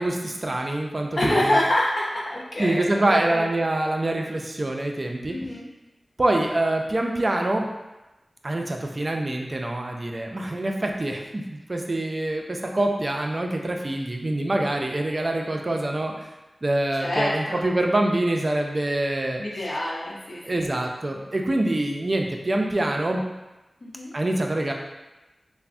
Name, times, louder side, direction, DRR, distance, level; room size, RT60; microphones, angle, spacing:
voice 1, 0.0-1.6 2.6-5.4 6.2-7.7 8.4-16.3 16.6-19.4 20.4-23.2 24.1-24.7, right 1 dB, 45° right, 2 dB, 0.3 m, -25 dB
voice 2, 1.2-3.4 5.2-5.7 17.0-17.6 19.4-20.7 23.8-24.1, left 1 dB, 70° left, -5 dB, 0.6 m, -26 dB
3.3 x 2.0 x 2.5 m, 1.0 s
wide cardioid pair, 55°, 0 cm